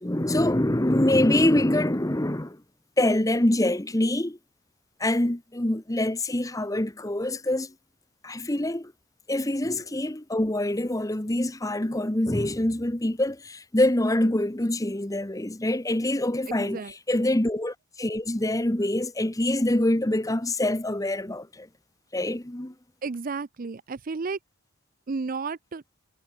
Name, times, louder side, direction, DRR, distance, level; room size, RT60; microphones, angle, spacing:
voice 1, 0.0-2.6 3.0-4.4 5.0-7.7 8.2-8.9 9.3-21.7 22.1-22.7, left 1 dB, 15° left, 1.0 m, -25 dB
voice 2, 16.5-17.2 23.0-24.4 25.1-25.8, right 4 dB, 40° right, 0.5 m, -33 dB
head